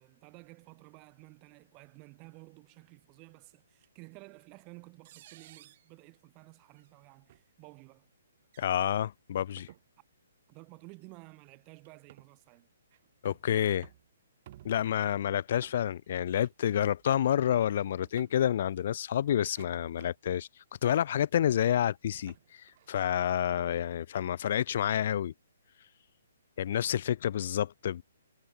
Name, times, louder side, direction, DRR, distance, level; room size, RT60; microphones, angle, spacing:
voice 1, 0.0-8.1 10.0-10.1 10.5-12.7, right 29 dB, 30° right, 5.4 m, -53 dB
sound 1, 3.8-3.9 5.0-5.9 6.8-6.9 7.3-7.4 8.4-8.7 9.4-9.8 11.0-11.1 11.8-12.3 12.9-13.5 13.8-14.1 14.5-15.0 15.6-16.2 16.4-16.5 16.8-17.6 18.0-18.5 19.3-20.3 20.9-21.3 21.9-23.2, right 14 dB, 45° right, 6.9 m, -56 dB
voice 2, 8.6-9.7 13.2-13.9 14.6-20.5 20.8-25.3 26.6-28.0, left 10 dB, 55° left, 0.3 m, -29 dB
hypercardioid pair, 145°, 0 cm